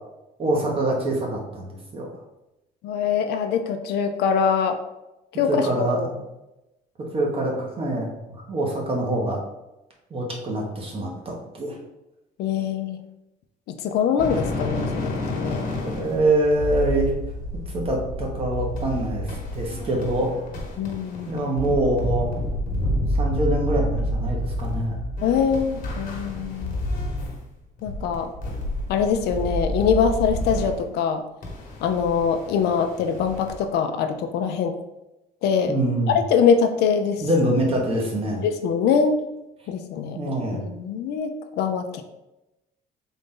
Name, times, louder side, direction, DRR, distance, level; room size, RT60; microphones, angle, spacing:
voice 1, 0.4-2.1 5.5-6.2 7.0-9.4 10.1-11.8 15.8-17.1 17.7-20.4 21.3-22.3 23.1-25.0 35.7-36.1 37.2-38.4 40.1-40.6, right 1 dB, 35° right, -1 dB, 1.1 m, -25 dB
voice 2, 2.8-4.8 5.4-6.1 12.4-13.0 13.7-15.6 20.8-21.5 25.2-26.8 27.8-28.3 28.9-31.2 31.8-34.8 35.4-35.7 36.3-37.2 38.4-39.2 39.7-40.2 40.5-42.0, left 6 dB, 75° left, 7 dB, 0.5 m, -23 dB
sound 1, 14.2-27.5 27.8-30.8 31.4-33.6, left 1 dB, 55° left, 1.2 m, -29 dB
3.9 x 2.6 x 3.7 m, 0.94 s
cardioid pair, 110°, 17 cm